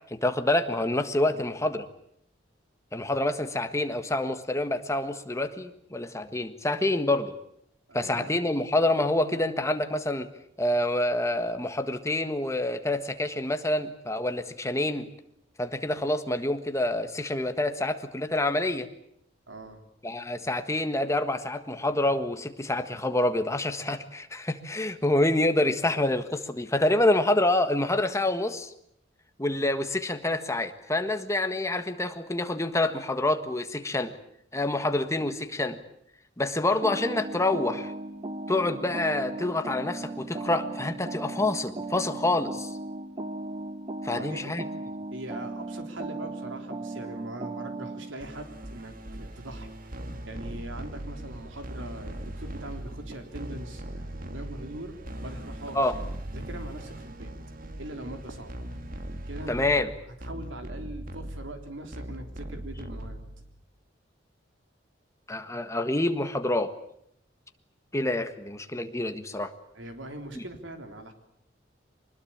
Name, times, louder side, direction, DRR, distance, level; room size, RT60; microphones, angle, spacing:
voice 1, 0.0-1.9 2.9-7.3 7.9-10.3 10.6-15.1 15.6-18.9 20.0-28.7 29.4-34.1 34.5-35.8 36.4-37.9 38.5-42.7 44.0-44.6 55.7-55.9 59.5-59.9 65.3-66.7 67.9-69.5 70.3-70.4, left 2 dB, 15° left, 8 dB, 1.5 m, -27 dB
voice 2, 7.9-8.4 19.5-19.8 44.0-44.6 45.1-49.7 50.3-55.0 55.2-55.9 56.3-57.3 57.8-58.6 59.3-59.8 60.2-63.5 69.7-71.1, right 1 dB, 90° right, 5 dB, 3.6 m, -41 dB
sound 1, 36.8-48.1, right 2 dB, 30° right, 1.1 m, -37 dB
sound 2, 48.2-63.6, right 1 dB, 50° right, 1.9 m, -40 dB
24.5 x 20.5 x 8.7 m, 0.73 s
head